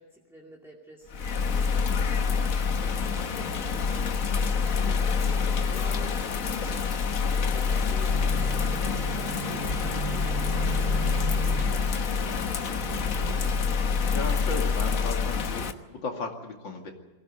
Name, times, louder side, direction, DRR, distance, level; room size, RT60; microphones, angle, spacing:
voice 1, 0.0-4.0 4.6-6.9 7.3-12.3, right 1 dB, ahead, -2 dB, 2.3 m, -49 dB
Bird vocalization bird call bird song / Rain, 1.1-15.7, left 5 dB, 50° left, 1.4 m, -26 dB
sound 1, 8.1-13.7, right 11 dB, 75° right, 1.6 m, -37 dB
voice 2, 14.1-16.9, left 3 dB, 80° left, 2 dB, 3.2 m, -35 dB
22.5 x 16.5 x 9.3 m, 1.2 s
omnidirectional pair, 2.0 m